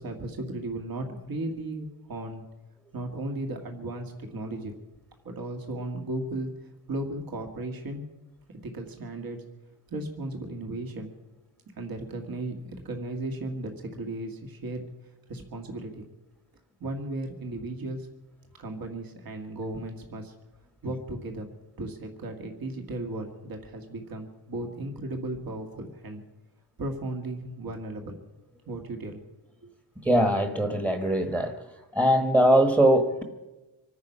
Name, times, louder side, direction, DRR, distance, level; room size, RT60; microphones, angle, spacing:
voice 1, 0.0-2.4 2.9-4.7 5.3-8.0 8.5-9.4 9.9-11.1 11.8-14.8 15.3-16.0 16.8-18.1 18.6-20.3 20.8-21.5 21.8-26.2 26.8-28.2 28.7-29.2 29.6-29.7, right 2 dB, 60° right, 4 dB, 1.9 m, -35 dB
voice 2, 30.0-31.6 31.9-33.2, right 1 dB, 10° right, 6 dB, 1.3 m, -21 dB
25.5 x 9.5 x 5.6 m, 1.1 s
wide cardioid pair, 135°, 41 cm